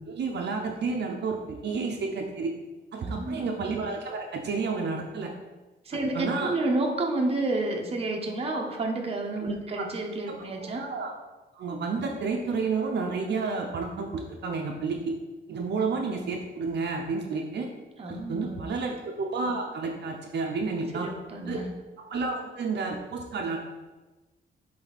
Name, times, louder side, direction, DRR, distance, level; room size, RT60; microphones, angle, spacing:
voice 1, 0.1-2.5 2.9-5.3 5.9-6.6 9.4-9.8 10.3-10.4 10.7-11.1 11.5-15.2 15.5-17.7 18.1-21.1 21.4-21.6 22.1-23.6, right 4 dB, 65° right, 2 dB, 0.6 m, -31 dB
voice 2, 3.0-3.5 5.8-10.9 18.0-18.6 20.9-21.7, right 2 dB, 30° right, 1 dB, 0.8 m, -30 dB
7.9 x 3.4 x 4.1 m, 1.2 s
wide cardioid pair, 165°, 19 cm